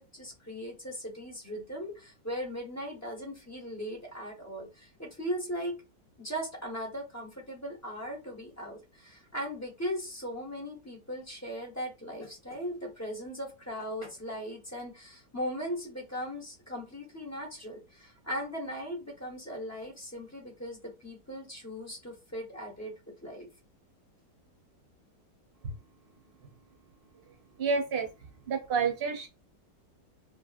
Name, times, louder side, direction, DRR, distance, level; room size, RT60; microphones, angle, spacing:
voice 1, 0.0-5.7 6.2-22.9 23.2-23.5, equal, 15° left, 0 dB, 0.5 m, -38 dB
voice 2, 27.6-28.1 28.5-29.3, right 5 dB, 45° right, 2 dB, 0.8 m, -29 dB
3.3 x 2.6 x 2.4 m, 0.28 s
omnidirectional pair, 1.9 m